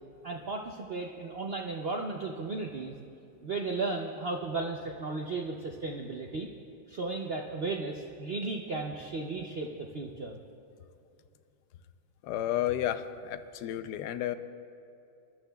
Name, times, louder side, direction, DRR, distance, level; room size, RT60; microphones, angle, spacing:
voice 1, 0.2-3.0 3.4-6.5 6.9-10.4, right 3 dB, 75° right, 1 dB, 0.5 m, -35 dB
voice 2, 12.2-14.3, left 12 dB, 75° left, 10 dB, 1.1 m, -32 dB
25.5 x 12.0 x 2.3 m, 2.6 s
omnidirectional pair, 1.9 m